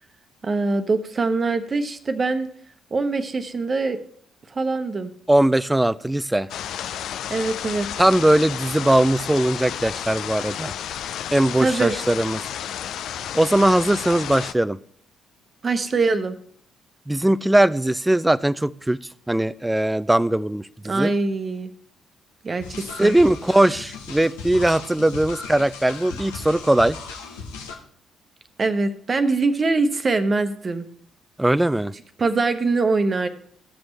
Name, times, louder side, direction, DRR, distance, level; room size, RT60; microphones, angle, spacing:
voice 1, 0.4-2.5 2.9-4.0 4.5-5.1 7.3-7.9 11.6-11.9 15.6-16.4 20.8-21.7 22.4-23.1 28.6-30.8 32.2-33.3, right 3 dB, 40° right, 9 dB, 1.0 m, -23 dB
voice 2, 5.3-6.5 8.0-10.7 11.3-12.4 13.3-14.8 17.1-19.0 19.3-21.1 23.0-27.0 31.4-31.9, right 1 dB, 10° right, 18 dB, 0.4 m, -20 dB
sound 1, 6.5-14.5, left 10 dB, 70° left, 0.4 m, -32 dB
sound 2, 22.6-27.8, left 5 dB, 85° left, 1.0 m, -37 dB
15.0 x 6.1 x 3.3 m, 0.62 s
hypercardioid pair, 50°, 0 cm